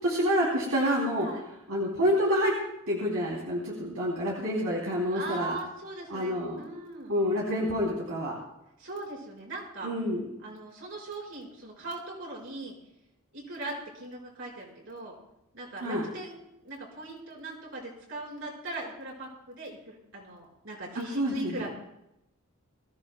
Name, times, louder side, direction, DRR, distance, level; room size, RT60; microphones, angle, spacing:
voice 1, 0.0-1.3 1.7-2.5 2.9-5.6 6.1-6.6 7.1-8.4 9.8-10.2 15.8-16.1 21.2-21.6, equal, 80° right, -4 dB, 3.1 m, -28 dB
voice 2, 5.1-7.2 8.8-9.9 10.4-12.7 13.3-15.1 15.5-16.3 16.6-21.7, right 2 dB, 60° right, -4 dB, 5.1 m, -39 dB
22.0 x 15.0 x 2.3 m, 0.84 s
head